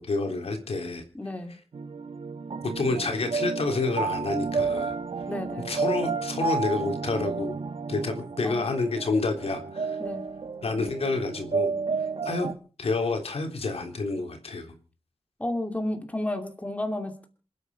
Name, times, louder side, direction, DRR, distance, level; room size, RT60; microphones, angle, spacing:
voice 1, 0.0-1.0 2.8-4.9 5.7-7.6 7.9-10.0 10.6-11.7 12.2-12.5 12.8-14.7, left 3 dB, 70° left, 5 dB, 3.6 m, -28 dB
voice 2, 1.1-1.6 5.3-5.7 8.4-8.7 10.0-10.2 15.4-17.3, left 1 dB, 15° left, 5 dB, 2.7 m, -32 dB
sound 1, 1.7-12.5, right 5 dB, 65° right, 1.2 m, -31 dB
27.0 x 9.4 x 5.5 m, 0.40 s
wide cardioid pair, 95°, 11 cm